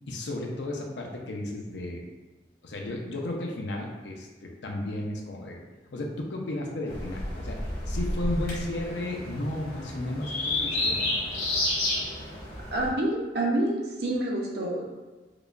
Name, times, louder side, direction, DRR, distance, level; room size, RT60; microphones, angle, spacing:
voice 1, 0.1-2.1 2.6-5.6 5.9-11.2, left 1 dB, 80° left, 0 dB, 0.6 m, -34 dB
sound 1, 6.9-12.9, left 1 dB, 60° left, 1.1 m, -31 dB
voice 2, 12.7-14.8, right 1 dB, 60° right, -2 dB, 0.7 m, -27 dB
4.8 x 2.2 x 2.5 m, 1.2 s
head